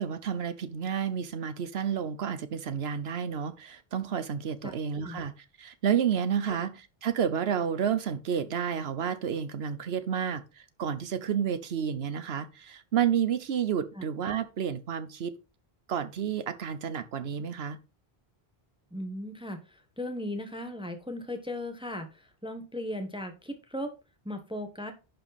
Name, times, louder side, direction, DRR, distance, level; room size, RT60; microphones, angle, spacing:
voice 1, 0.0-10.4 10.8-15.3 15.9-17.8, right 8 dB, 80° right, 1.1 m, -30 dB
voice 2, 4.6-5.2 6.5-6.6 13.9-14.0 18.9-23.9 24.2-24.9, left 1 dB, 5° right, 1.2 m, -37 dB
11.0 x 5.1 x 4.1 m
omnidirectional pair, 1.0 m